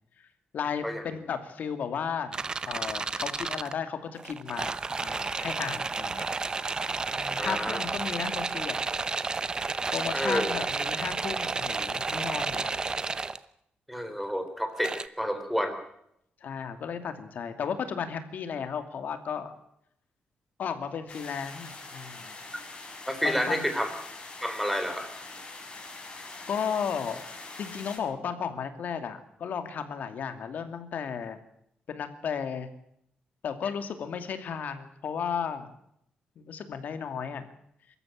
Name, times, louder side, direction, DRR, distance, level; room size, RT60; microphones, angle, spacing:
voice 1, 0.5-2.4 2.6-4.7 5.0-6.3 7.1-8.8 9.9-12.8 16.4-19.5 20.6-22.4 23.2-23.7 25.8-25.9 26.5-27.2 27.6-31.4 31.9-32.7 33.4-35.7 36.4-37.4, left 7 dB, 60° left, 9 dB, 2.5 m, -34 dB
sound 1, 2.3-3.7 4.2-13.4 14.8-15.1, right 4 dB, 25° right, 0.8 m, -31 dB
voice 2, 7.4-7.8 10.1-10.5 13.9-15.8 23.1-23.9 24.4-25.1, equal, ahead, 7 dB, 3.5 m, -29 dB
sound 2, 21.1-28.0, left 3 dB, 30° left, 5.6 m, -43 dB
24.0 x 14.0 x 8.9 m, 0.74 s
wide cardioid pair, 150°, 3 cm